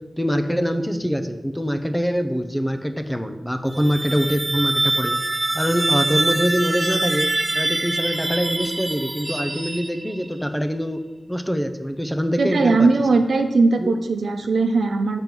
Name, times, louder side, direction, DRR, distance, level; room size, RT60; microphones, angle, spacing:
voice 1, 0.2-5.2 5.5-11.0 11.3-12.9 13.8-14.0, equal, 5° left, 8 dB, 0.7 m, -24 dB
sound 1, 3.6-10.3, right 2 dB, 30° right, 0.4 m, -24 dB
voice 2, 12.4-15.2, right 3 dB, 90° right, 6 dB, 0.7 m, -19 dB
7.3 x 5.4 x 6.1 m, 1.1 s
wide cardioid pair, 60°, 0 cm